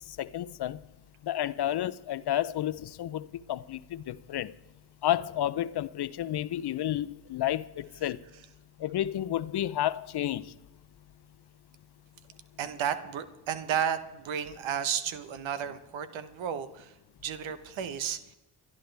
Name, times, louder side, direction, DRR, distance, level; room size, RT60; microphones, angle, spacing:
voice 1, 0.2-0.8 1.2-4.5 5.0-8.2 8.8-10.5, left 12 dB, 55° left, 0.7 m, -31 dB
voice 2, 12.6-16.9 17.2-18.4, right 8 dB, 80° right, 1.2 m, -33 dB
27.5 x 11.0 x 3.4 m
supercardioid pair, 60°, 46 cm